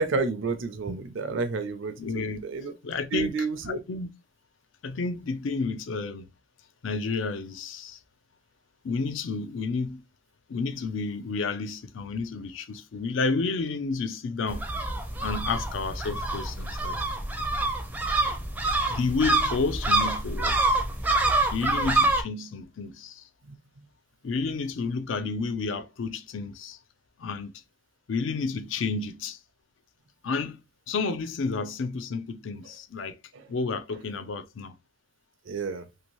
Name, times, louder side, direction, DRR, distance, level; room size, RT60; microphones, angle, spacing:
voice 1, 0.0-2.7 3.1-3.8 23.5-23.6 33.3-33.4 35.5-35.9, right 4 dB, 75° right, 0.5 m, -30 dB
voice 2, 2.0-2.4 2.8-4.1 4.8-6.3 6.8-8.0 8.8-10.0 10.5-14.6 15.2-17.0 18.8-20.5 21.5-23.2 24.2-26.8 27.2-27.5 28.1-29.4 30.2-30.6 30.9-33.2 33.5-34.7, left 4 dB, 75° left, 0.4 m, -31 dB
sound 1, 14.5-22.2, right 2 dB, 10° right, 0.4 m, -26 dB
2.8 x 2.6 x 2.9 m
head